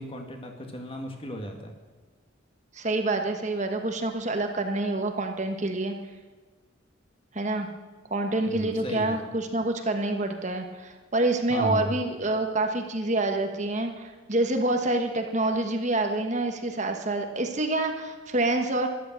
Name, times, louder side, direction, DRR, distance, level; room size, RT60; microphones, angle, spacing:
voice 1, 0.0-1.7 8.5-9.3 11.5-11.9, equal, 30° left, 3 dB, 2.0 m, -34 dB
voice 2, 2.7-5.9 7.3-7.7 8.1-18.9, right 2 dB, 35° right, 4 dB, 1.4 m, -27 dB
13.5 x 12.0 x 7.6 m, 1.3 s
head